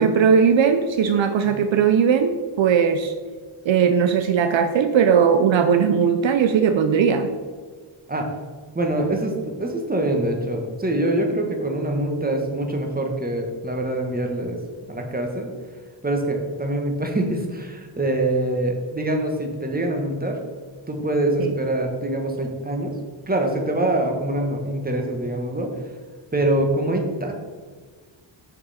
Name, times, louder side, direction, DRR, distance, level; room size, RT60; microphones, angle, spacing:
voice 1, 0.0-3.1 3.7-7.3 21.4-21.5, right 7 dB, 70° right, 8 dB, 0.6 m, -18 dB
voice 2, 8.7-14.6 14.9-15.5 16.0-20.4 20.9-22.9 23.3-25.7 26.3-27.3, right 1 dB, 20° right, 2 dB, 1.4 m, -24 dB
6.6 x 5.4 x 4.2 m, 1.5 s
cardioid pair, 65°, 48 cm